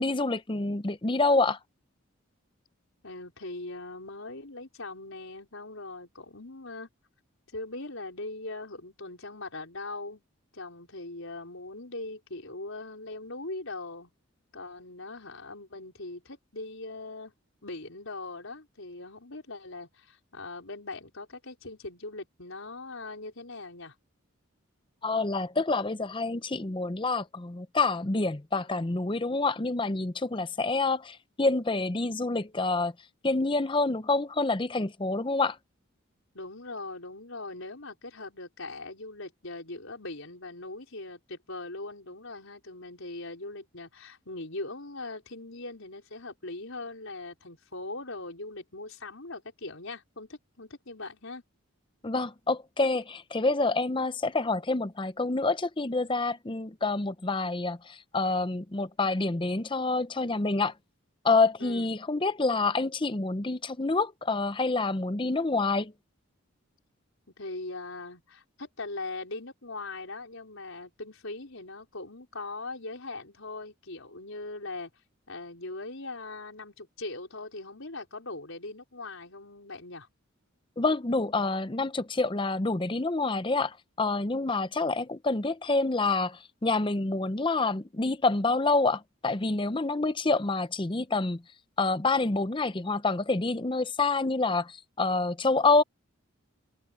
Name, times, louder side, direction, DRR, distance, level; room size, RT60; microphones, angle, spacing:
voice 1, 0.0-1.6 25.0-32.9 33.2-35.6 52.0-60.7 61.2-65.9 80.8-91.4 91.8-95.8, left 3 dB, 25° left, 0.7 m, -27 dB
voice 2, 3.0-6.9 7.5-10.2 10.5-14.1 14.5-17.3 17.6-23.9 36.3-51.4 61.6-62.0 67.4-74.9 75.3-80.1, left 2 dB, 70° left, 4.8 m, -40 dB
head